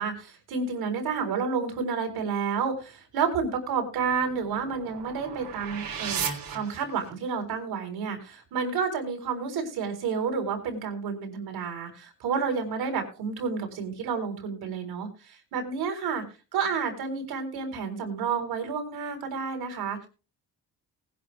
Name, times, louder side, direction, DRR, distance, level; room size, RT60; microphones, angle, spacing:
voice 1, 0.0-6.2 6.5-16.2 16.5-20.1, right 5 dB, 85° right, 5 dB, 4.0 m, -30 dB
sound 1, 3.9-7.4, right 6 dB, 70° right, 3.3 m, -36 dB
20.0 x 11.0 x 2.2 m, 0.32 s
cardioid pair, 90°, 36 cm